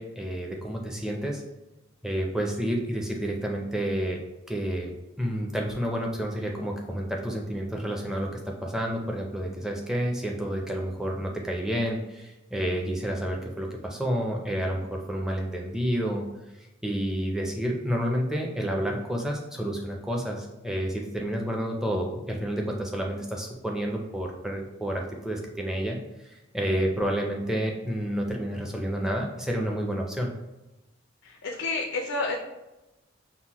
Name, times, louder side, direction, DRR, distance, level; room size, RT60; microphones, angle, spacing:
voice 1, 0.0-1.4 2.0-4.2 4.5-16.3 16.8-26.3 26.5-30.3, equal, 5° right, 0 dB, 0.4 m, -30 dB
voice 2, 31.2-32.4, left 3 dB, 85° left, 0 dB, 0.5 m, -30 dB
5.6 x 2.1 x 2.9 m, 1.0 s
head